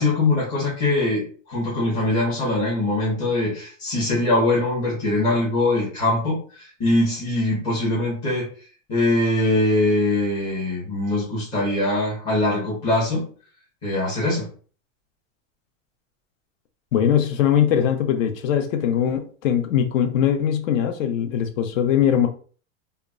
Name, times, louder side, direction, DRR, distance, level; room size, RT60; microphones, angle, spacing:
voice 1, 0.0-8.5 8.9-13.2 13.8-14.5, left 2 dB, 10° left, 0.4 m, -22 dB
voice 2, 16.9-22.3, left 9 dB, 70° left, 0.6 m, -21 dB
2.1 x 2.0 x 3.4 m
supercardioid pair, 170°, 40 cm